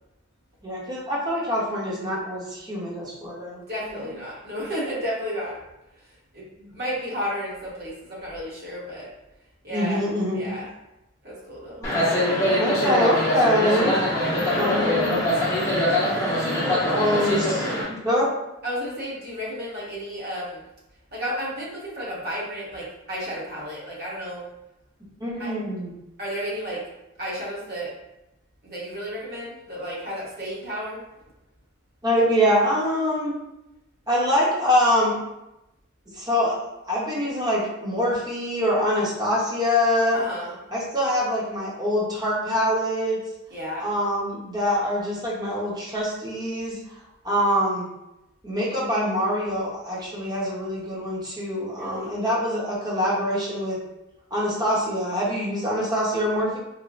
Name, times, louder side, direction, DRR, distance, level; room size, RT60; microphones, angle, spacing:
voice 1, 0.6-3.6 3.9-4.2 6.6-6.7 9.7-10.5 11.8-11.9 12.6-13.9 14.5-15.3 16.6-18.3 25.2-25.9 32.0-33.3 34.1-35.1 36.1-36.6 36.9-40.2 40.7-43.2 43.8-46.8 47.2-47.9 48.4-53.8 54.3-56.6, equal, 20° right, -6 dB, 0.9 m, -24 dB
voice 2, 3.7-5.6 6.3-6.5 6.7-9.1 9.6-10.1 10.3-10.7 11.2-11.9 14.3-14.9 16.6-16.8 18.6-20.6 21.1-24.4 25.4-25.5 26.2-26.8 27.2-27.9 28.6-31.0 40.1-40.6 43.5-43.9 51.8-52.1, equal, 45° right, -6 dB, 1.1 m, -32 dB
sound 1, 11.8-17.8, left 1 dB, 15° left, 0.9 m, -23 dB
3.2 x 2.1 x 3.9 m, 0.91 s
head